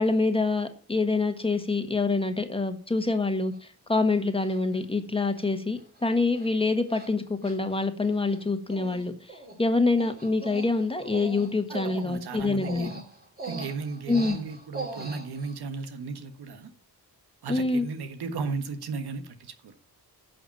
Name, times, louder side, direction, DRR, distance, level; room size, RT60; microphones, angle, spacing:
voice 1, 0.0-3.5 3.9-12.9 14.1-14.4 17.5-17.9, left 3 dB, 15° left, 1.5 m, -26 dB
Human voice, 3.5-3.6 4.4-4.8 5.4-5.5 5.8-6.0 6.3-6.5 6.9-7.1 7.4-8.4 8.7-9.0 9.3-15.6, right 3 dB, 25° right, 2.6 m, -40 dB
voice 2, 11.7-13.0 13.4-16.7 17.4-19.7, right 4 dB, 90° right, 1.5 m, -35 dB
11.0 x 6.0 x 7.0 m
cardioid pair, 90°, 38 cm